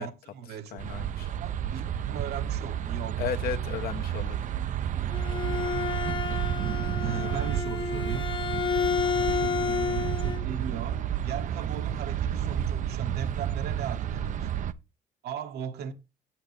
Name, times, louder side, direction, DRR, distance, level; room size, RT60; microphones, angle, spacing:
voice 1, 0.0-0.8 1.3-3.3 7.0-8.3 9.3-14.5 15.2-15.9, right 8 dB, 75° right, 1.3 m, -38 dB
voice 2, 0.7-1.3 3.2-4.4 9.1-9.4, left 9 dB, 65° left, 1.0 m, -35 dB
sound 1, 0.8-14.7, right 10 dB, 50° right, 0.5 m, -31 dB
Bowed string instrument, 4.9-10.4, left 6 dB, 30° left, 0.9 m, -30 dB
9.0 x 7.5 x 3.3 m
cardioid pair, 110°, 17 cm